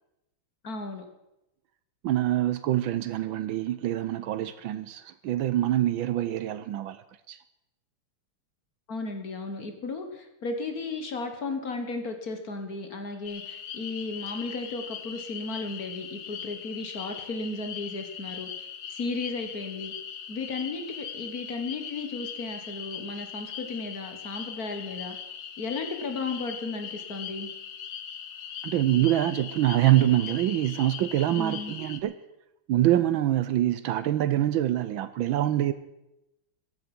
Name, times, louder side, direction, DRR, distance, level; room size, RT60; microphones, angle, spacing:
voice 1, 0.6-1.1 8.9-18.5 18.9-19.9 20.3-25.2 25.6-27.5 31.4-31.8, left 3 dB, 45° left, 6 dB, 1.9 m, -34 dB
voice 2, 2.0-7.0 7.3-7.4 28.6-32.1 32.7-35.7, right 13 dB, 75° right, 14 dB, 1.4 m, -25 dB
sound 1, 13.3-32.0, left 8 dB, 60° left, 1.6 m, -40 dB
14.5 x 10.5 x 6.0 m, 0.90 s
omnidirectional pair, 2.4 m